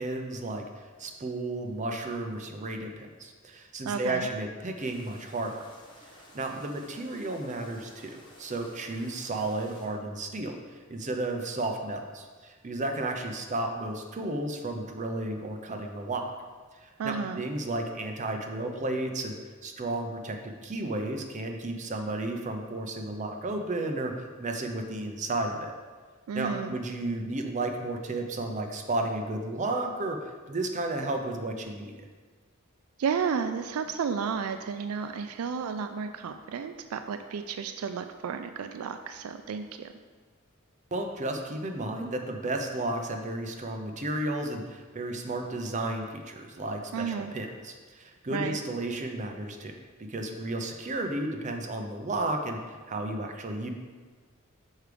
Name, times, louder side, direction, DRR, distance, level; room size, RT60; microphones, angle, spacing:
voice 1, 0.0-5.6 6.3-16.3 16.8-19.4 19.6-24.1 24.4-25.7 26.3-31.9 40.9-49.7 50.0-53.7, right 2 dB, 35° right, 4 dB, 0.6 m, -33 dB
voice 2, 3.9-4.3 17.0-17.4 26.3-26.7 33.0-39.9 46.9-47.3 48.3-48.6, right 6 dB, 90° right, 8 dB, 0.4 m, -32 dB
sound 1, 4.8-9.9, equal, 25° left, 1.2 m, -54 dB
6.5 x 4.7 x 5.0 m, 1.5 s
head